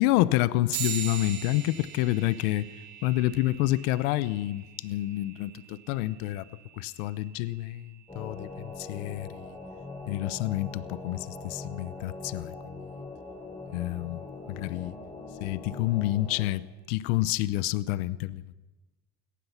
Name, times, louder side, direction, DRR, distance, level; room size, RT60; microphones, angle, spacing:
voice 1, 0.0-2.7 3.0-6.5 6.7-9.5 10.1-12.5 13.7-15.0 15.4-18.4, left 16 dB, 75° left, 1.0 m, -28 dB
sound 1, 0.7-10.5, right 9 dB, 85° right, 6.5 m, -42 dB
sound 2, 8.1-16.5, left 3 dB, 15° left, 7.6 m, -42 dB
28.0 x 18.5 x 5.9 m
hypercardioid pair, 75°, 43 cm